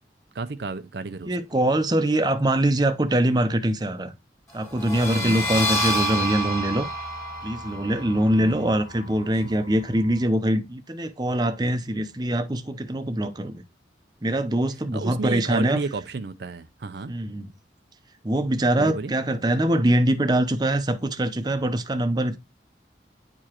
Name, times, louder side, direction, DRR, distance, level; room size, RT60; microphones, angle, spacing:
voice 1, 0.3-1.4 5.2-5.6 8.4-8.7 9.3-9.4 14.9-17.1 18.7-19.1, right 4 dB, 70° right, 0.5 m, -32 dB
voice 2, 1.3-4.1 4.5-6.9 7.4-13.6 14.2-15.8 17.1-17.5 18.2-22.4, right 1 dB, 25° right, 0.7 m, -23 dB
sound 1, 4.7-10.2, equal, 15° left, 1.7 m, -29 dB
9.7 x 4.9 x 2.9 m
head